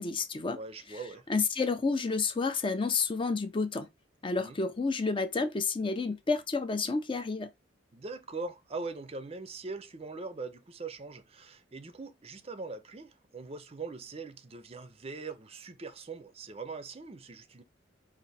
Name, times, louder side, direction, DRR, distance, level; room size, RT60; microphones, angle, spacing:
voice 1, 0.0-0.6 1.3-3.9 4.2-7.5, left 4 dB, 25° left, 0.4 m, -30 dB
voice 2, 0.5-1.3 4.4-4.6 7.9-17.6, right 3 dB, 30° right, 0.5 m, -41 dB
5.0 x 2.5 x 4.1 m
head